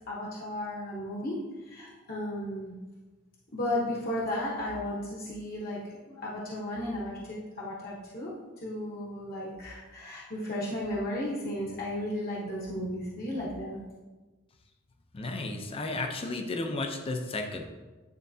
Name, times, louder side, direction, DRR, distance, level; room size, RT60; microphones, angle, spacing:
voice 1, 0.1-1.4 1.6-2.8 3.5-8.3 8.6-13.8, left 1 dB, 50° left, -5 dB, 1.0 m, -34 dB
voice 2, 15.1-17.6, left 2 dB, 30° left, 4 dB, 0.6 m, -33 dB
9.4 x 3.9 x 2.7 m, 1.2 s
head